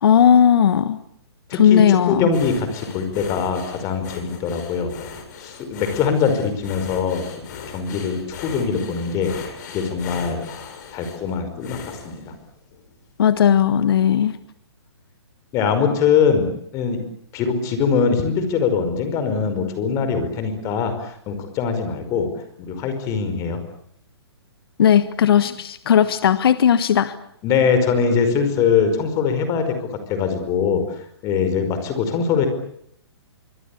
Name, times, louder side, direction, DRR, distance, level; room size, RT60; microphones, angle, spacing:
voice 1, 0.0-1.0 1.5-2.3 13.2-14.4 24.8-27.2, left 9 dB, 60° left, 12 dB, 1.4 m, -16 dB
voice 2, 1.5-4.9 5.4-7.3 7.7-12.3 15.5-17.0 17.3-22.3 22.6-23.6 27.4-32.5, left 6 dB, 25° left, 9 dB, 5.2 m, -22 dB
sound 1, 2.3-12.9 13.4-13.6 14.0-14.1, left 6 dB, 45° left, 7.3 m, -38 dB
25.5 x 24.0 x 8.6 m, 0.70 s
hypercardioid pair, 155°, 14 cm